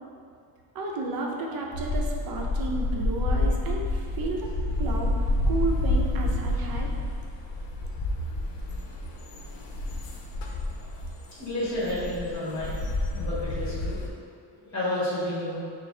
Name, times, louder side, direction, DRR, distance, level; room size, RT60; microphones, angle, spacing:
voice 1, 0.7-4.5 4.8-6.9, right 3 dB, 55° right, -1 dB, 0.6 m, -32 dB
sound 1, 1.7-14.1, left 2 dB, 80° left, 0.6 m, -29 dB
voice 2, 11.4-12.8 13.1-14.0 14.5-15.6, left 1 dB, 40° left, -9 dB, 1.2 m, -30 dB
4.7 x 2.0 x 3.8 m, 2.3 s
wide cardioid pair, 175°, 42 cm